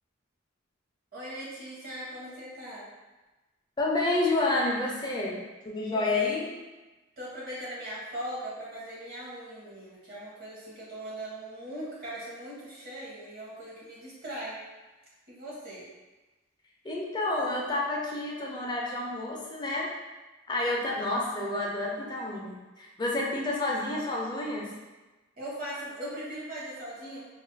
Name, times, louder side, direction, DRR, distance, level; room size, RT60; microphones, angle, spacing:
voice 1, 1.1-2.9 5.9-6.4 7.2-14.6 15.3-15.8 25.4-27.2, right 1 dB, 50° right, -7 dB, 0.8 m, -40 dB
voice 2, 3.8-5.4 5.6-6.5 16.8-19.9 20.5-24.7, left 2 dB, 20° left, -3 dB, 0.4 m, -29 dB
5.2 x 2.4 x 2.2 m, 1.1 s
head